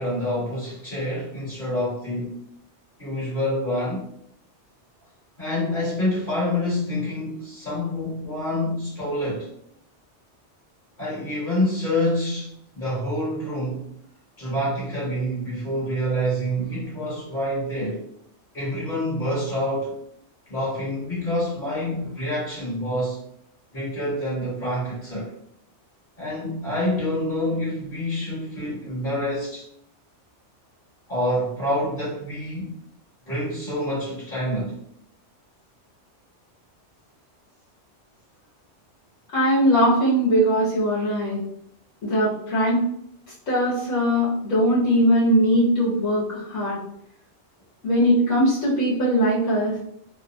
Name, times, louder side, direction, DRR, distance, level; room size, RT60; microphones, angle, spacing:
voice 1, 0.0-2.4 3.0-4.0 5.4-9.5 11.0-13.9 14.4-18.0 18.5-19.9 20.5-23.2 23.7-25.3 26.2-29.7 31.1-32.7 33.3-34.8, left 1 dB, 50° left, -7 dB, 1.2 m, -27 dB
voice 2, 39.3-41.4 42.0-42.8 43.5-46.8 47.8-49.8, equal, 80° left, -7 dB, 1.1 m, -20 dB
2.6 x 2.0 x 2.6 m, 0.72 s
omnidirectional pair, 1.2 m